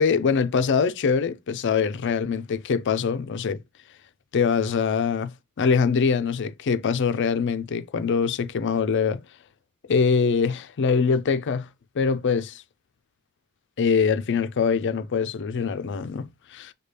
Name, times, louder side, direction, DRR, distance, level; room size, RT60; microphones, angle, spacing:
voice 1, 0.0-3.6 4.3-9.2 9.9-11.7 12.0-12.6 13.8-16.7, left 5 dB, 55° left, 0.4 m, -23 dB
6.6 x 2.3 x 3.3 m
head